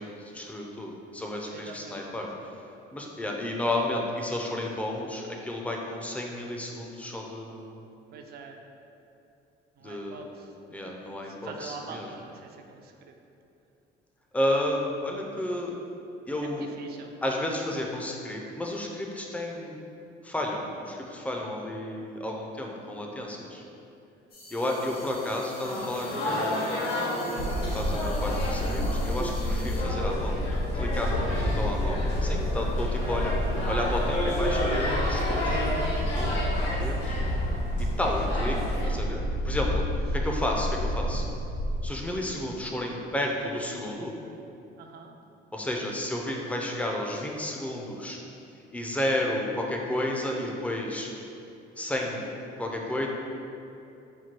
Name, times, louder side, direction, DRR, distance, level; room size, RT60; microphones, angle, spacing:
voice 1, 0.0-2.3 2.9-7.8 9.8-10.3 10.7-12.1 14.3-15.7 16.3-16.7 17.2-19.8 20.2-23.6 24.5-26.6 27.6-30.4 30.7-37.2 37.8-39.8 40.1-41.2 41.8-44.1 45.5-48.2 48.7-51.1 51.8-52.2 52.6-53.1, left 1 dB, 5° left, 0 dB, 0.4 m, -32 dB
voice 2, 1.5-2.2 8.1-8.6 9.8-10.5 11.2-13.2 16.4-17.2 31.2-31.4 44.8-45.1, right 4 dB, 55° right, 3 dB, 0.4 m, -44 dB
sound 1, 24.3-29.8, left 2 dB, 50° left, 0.9 m, -48 dB
sound 2, 25.6-38.9, left 1 dB, 70° left, 1.2 m, -32 dB
sound 3, 27.4-41.9, left 1 dB, 85° left, 0.7 m, -29 dB
4.4 x 2.2 x 4.4 m, 2.8 s
cardioid pair, 125°, 19 cm